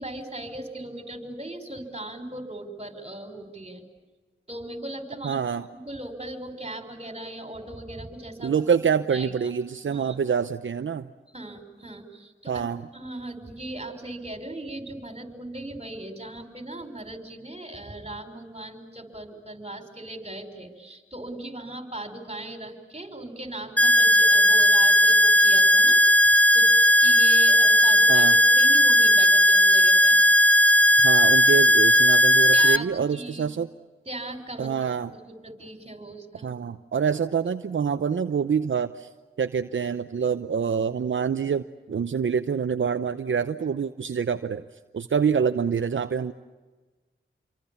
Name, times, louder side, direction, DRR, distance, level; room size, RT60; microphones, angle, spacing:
voice 1, 0.0-3.8 4.5-5.4 5.7-8.5 9.1-9.5 9.8-10.2 11.3-12.6 12.9-26.0 26.5-30.2 32.5-33.5 34.1-34.7 35.1-36.5, right 1 dB, 30° right, 7 dB, 5.5 m, -38 dB
voice 2, 5.2-5.6 8.4-11.1 12.5-12.8 28.1-28.4 31.0-33.7 34.6-35.1 36.4-39.1 39.4-44.6 44.9-46.3, right 6 dB, 70° right, 9 dB, 0.8 m, -26 dB
sound 1, 23.8-32.8, left 1 dB, 5° left, 0.8 m, -17 dB
28.0 x 24.0 x 7.2 m, 1.3 s
cardioid pair, 45°, 21 cm